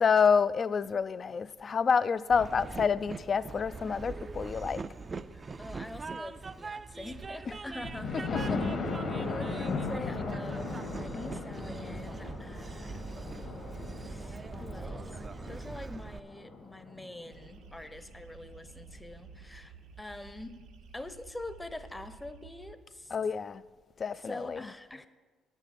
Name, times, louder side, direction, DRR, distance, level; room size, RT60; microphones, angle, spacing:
voice 1, 0.0-4.8 8.1-8.8 23.1-23.6 24.0-24.7, left 6 dB, 45° left, 0.3 m, -28 dB
Train, 2.3-16.2, right 4 dB, 35° right, 0.4 m, -42 dB
voice 2, 5.3-8.6 9.3-13.1 14.0-20.6 20.9-23.1 24.2-25.1, left 1 dB, 15° left, 0.7 m, -45 dB
Thunder, 7.8-17.6 18.1-18.2 18.6-18.7 19.0-19.1, left 3 dB, 65° left, 1.7 m, -37 dB
sound 1, 17.3-22.8, right 5 dB, 80° right, 0.8 m, -52 dB
9.1 x 7.1 x 5.9 m
supercardioid pair, 65°, 0 cm